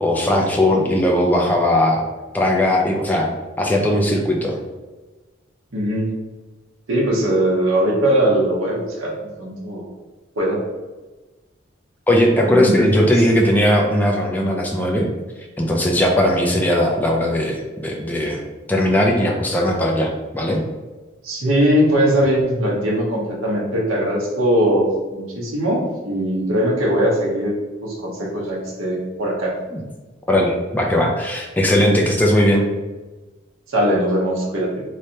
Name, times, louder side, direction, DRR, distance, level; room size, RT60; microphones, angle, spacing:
voice 1, 0.0-2.0 2.3-3.3 3.6-4.6 12.1-15.1 15.6-18.4 18.7-20.6 29.7-29.8 30.3-32.6, left 1 dB, 10° left, 0 dB, 0.4 m, -18 dB
voice 2, 5.7-6.1 6.9-9.1 9.4-9.9 10.4-10.6 12.5-13.1 21.2-27.5 27.8-29.6 33.7-34.8, equal, 90° right, -3 dB, 0.9 m, -20 dB
3.2 x 3.2 x 2.7 m, 1.2 s
head